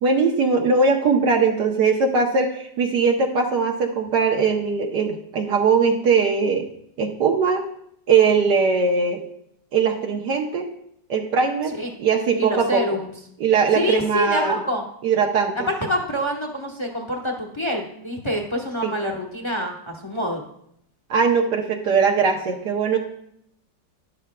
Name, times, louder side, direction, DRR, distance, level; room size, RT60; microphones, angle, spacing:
voice 1, 0.0-6.7 7.0-7.6 8.1-9.2 9.7-10.7 11.1-11.7 12.0-12.8 13.4-14.6 15.0-15.5 18.8-18.9 21.1-23.0, right 5 dB, 70° right, 1 dB, 1.3 m, -20 dB
voice 2, 12.4-13.1 13.7-14.8 15.5-20.4, equal, 20° left, 1 dB, 0.9 m, -26 dB
12.5 x 10.5 x 2.2 m, 0.74 s
omnidirectional pair, 1.9 m